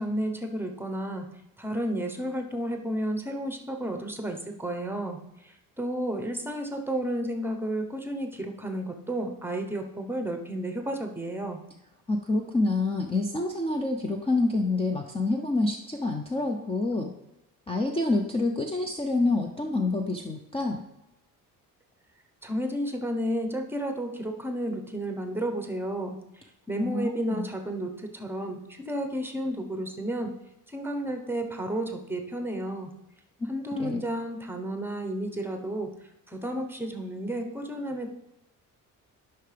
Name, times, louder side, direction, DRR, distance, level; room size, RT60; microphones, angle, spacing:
voice 1, 0.0-11.6 22.4-26.2 26.7-30.3 30.7-32.9 33.5-36.0 36.3-38.1, right 1 dB, 5° right, 4 dB, 0.9 m, -32 dB
voice 2, 12.1-17.1 17.7-20.8 26.8-27.5 33.8-34.1, left 2 dB, 15° left, 2 dB, 0.6 m, -27 dB
12.0 x 5.7 x 3.4 m, 0.89 s
cardioid pair, 140°, 34 cm